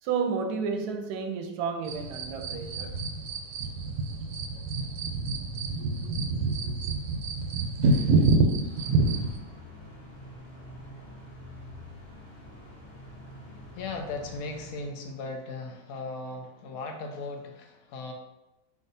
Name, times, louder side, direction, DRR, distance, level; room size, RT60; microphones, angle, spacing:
voice 1, 0.0-3.0 5.8-6.1 6.6-6.8, right 5 dB, 85° right, 1.1 m, -32 dB
sound 1, 1.9-9.4, right 3 dB, 70° right, 0.8 m, -27 dB
sound 2, 8.6-15.4, equal, 25° left, 0.8 m, -46 dB
voice 2, 13.7-18.1, left 3 dB, 75° left, 1.0 m, -37 dB
5.8 x 2.6 x 2.6 m
omnidirectional pair, 1.6 m